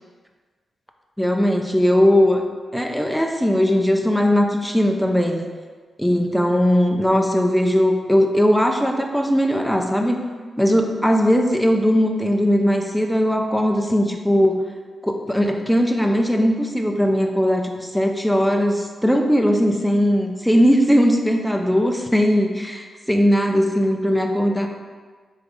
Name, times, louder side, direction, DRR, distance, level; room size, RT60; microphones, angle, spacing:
voice 1, 1.2-2.4 2.7-5.5 6.0-10.2 10.6-14.6 15.0-24.7, equal, ahead, 3 dB, 0.5 m, -19 dB
3.6 x 3.5 x 3.3 m, 1.5 s
supercardioid pair, 45°, 0 cm